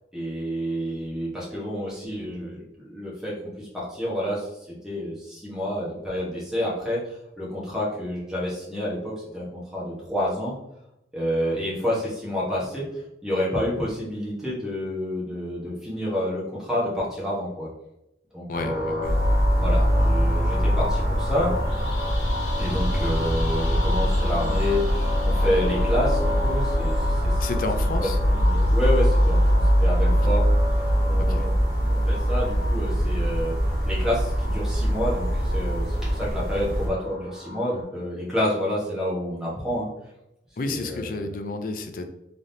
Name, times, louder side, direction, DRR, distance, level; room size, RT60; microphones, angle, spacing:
voice 1, 0.1-7.0 7.4-10.5 11.1-17.7 18.3-19.1 19.6-21.5 22.6-27.4 27.9-30.4 31.0-31.5 31.9-33.5 33.8-39.9 40.6-41.3, equal, 5° right, -6 dB, 1.1 m, -29 dB
sound 1, 18.5-37.8, left 1 dB, 85° left, 1.4 m, -33 dB
voice 2, 18.5-19.1 27.4-28.2 30.1-30.2 31.2-31.5 40.6-42.1, left 3 dB, 50° left, 7 dB, 0.4 m, -31 dB
sound 2, 19.0-36.9, equal, 60° right, 1.0 m, -23 dB
3.7 x 3.4 x 2.7 m, 0.87 s
head